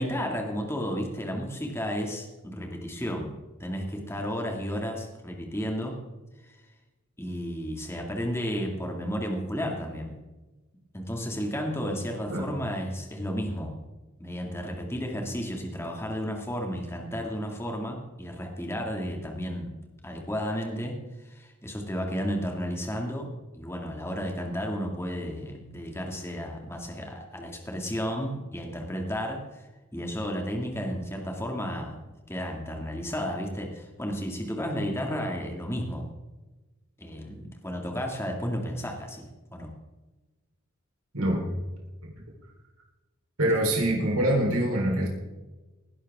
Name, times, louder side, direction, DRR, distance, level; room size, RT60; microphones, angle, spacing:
voice 1, 0.0-3.3 3.6-6.0 6.4-6.6 7.2-10.2 10.9-13.8 14.2-19.7 20.0-23.3 23.5-29.7 29.9-32.0 32.3-36.1 37.0-39.7, equal, 10° left, 1 dB, 2.1 m, -33 dB
voice 2, 41.1-41.5 43.4-45.1, right 1 dB, 85° right, -1 dB, 3.9 m, -24 dB
19.0 x 11.0 x 3.6 m, 1.1 s
head